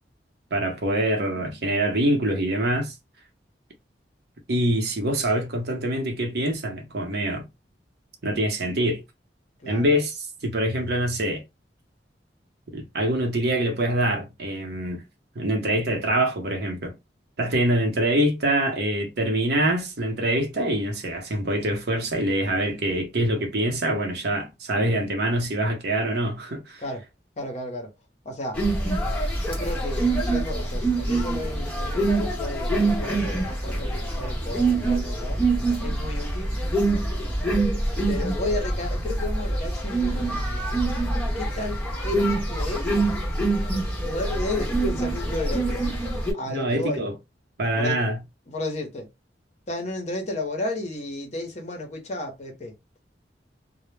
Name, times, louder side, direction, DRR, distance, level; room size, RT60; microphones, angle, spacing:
voice 1, 0.5-2.9 4.5-7.4 8.2-9.0 9.7-11.4 12.7-15.0 15.3-16.9 17.4-26.8 46.5-47.1 47.6-48.2, right 1 dB, 65° right, 0.7 m, -25 dB
voice 2, 9.6-10.0 26.8-27.0 27.4-27.9 28.2-28.6 29.4-35.4 35.8-36.6 38.1-40.7 41.4-42.9 44.0-45.8 46.3-47.0 47.8-48.0 48.5-49.1 49.7-52.7, left 1 dB, 40° left, 0.7 m, -33 dB
sound 1, 28.5-46.3, right 2 dB, 5° left, 0.9 m, -25 dB
2.0 x 2.0 x 3.1 m
head